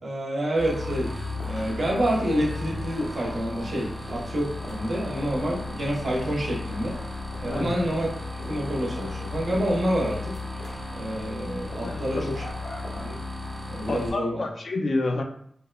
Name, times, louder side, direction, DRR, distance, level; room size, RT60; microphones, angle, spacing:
voice 1, 0.0-1.1 1.5-7.0 7.4-8.1 8.4-10.3 10.9-12.4 13.0-13.2 13.7-14.4, equal, 60° right, -4 dB, 0.8 m, -28 dB
sound 1, 0.6-14.1, left 2 dB, 20° right, 0.6 m, -35 dB
sound 2, 1.0-13.0, left 1 dB, 90° left, 0.7 m, -45 dB
voice 2, 7.5-7.8 11.8-12.3 13.9-15.2, left 2 dB, 50° left, 4 dB, 0.3 m, -29 dB
3.5 x 2.1 x 2.2 m, 0.66 s
wide cardioid pair, 155°, 0 cm